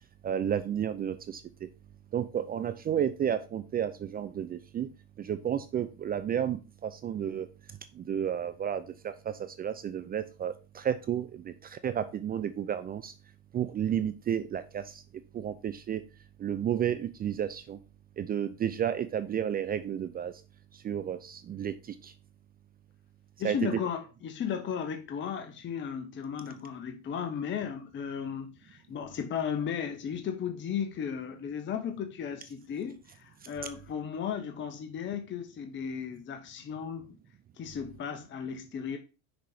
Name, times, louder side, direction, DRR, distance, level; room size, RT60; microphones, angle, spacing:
voice 1, 0.2-1.7 2.1-4.9 5.2-7.5 7.9-13.1 13.5-15.0 15.3-16.0 16.4-17.8 18.2-20.4 20.7-22.1 23.4-23.8, right 9 dB, 25° right, 0.4 m, -32 dB
voice 2, 23.4-37.2 37.6-39.0, left 7 dB, 30° left, 0.9 m, -35 dB
6.2 x 4.0 x 4.9 m
supercardioid pair, 105°, 40 cm